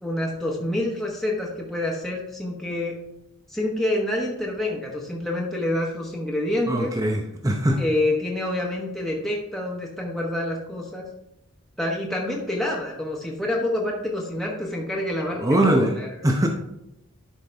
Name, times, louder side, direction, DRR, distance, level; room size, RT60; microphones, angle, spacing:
voice 1, 0.0-3.0 3.5-7.0 7.8-11.1 11.8-16.2, left 1 dB, ahead, -3 dB, 1.0 m, -27 dB
voice 2, 6.7-7.8 15.4-15.9 16.2-16.5, right 1 dB, 15° right, 2 dB, 0.6 m, -21 dB
11.5 x 5.2 x 3.4 m, 0.85 s
head